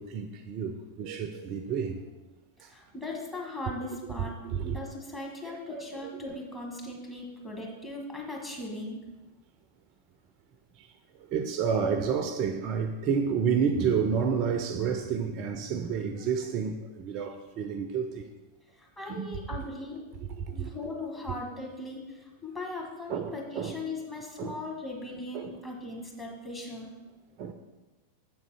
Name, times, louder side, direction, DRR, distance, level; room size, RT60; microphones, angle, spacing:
voice 1, 0.0-2.0 2.6-2.7 4.2-4.8 5.4-6.4 10.8-10.9 11.2-18.3 19.1-19.4 20.3-20.7 23.1-23.7 24.4-24.6 25.3-25.6 27.4-27.5, right 6 dB, 40° right, 0.4 m, -30 dB
voice 2, 2.6-4.4 4.6-9.0 18.8-20.0 20.5-26.9, left 2 dB, 10° left, 1.5 m, -39 dB
7.0 x 3.8 x 4.8 m
figure-of-eight pair, 90°, 0 cm